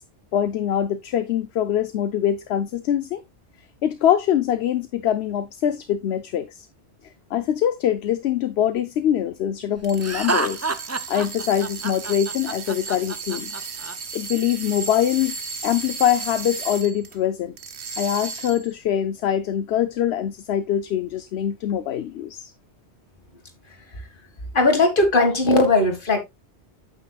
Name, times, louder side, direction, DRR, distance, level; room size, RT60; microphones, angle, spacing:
voice 1, 0.3-3.2 3.8-6.7 7.3-10.7 11.1-13.5 14.1-15.4 15.6-17.5 18.0-22.5, left 10 dB, 70° left, 0.9 m, -23 dB
sound 1, 9.8-17.2 17.6-18.7, right 5 dB, 70° right, 1.4 m, -35 dB
Laughter, 10.0-13.9, right 3 dB, 25° right, 0.3 m, -28 dB
voice 2, 24.5-26.2, left 2 dB, 50° left, 2.1 m, -18 dB
9.0 x 8.4 x 2.3 m
omnidirectional pair, 1.2 m